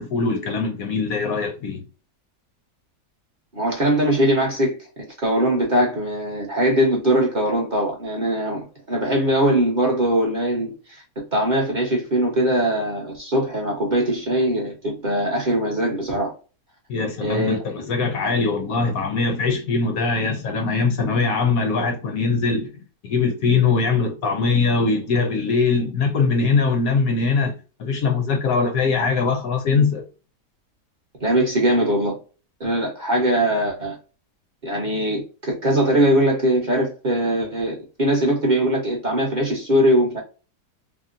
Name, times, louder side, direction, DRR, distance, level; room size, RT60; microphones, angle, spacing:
voice 1, 0.0-1.8 16.9-22.7 23.0-27.5 27.8-30.1, left 4 dB, 70° left, 0.9 m, -21 dB
voice 2, 3.5-4.8 5.2-11.0 11.3-16.3 17.2-17.6 18.2-18.3 31.2-32.1 32.6-33.9 34.6-40.2, right 1 dB, 40° right, 0.7 m, -21 dB
3.6 x 2.0 x 2.5 m
omnidirectional pair, 1.9 m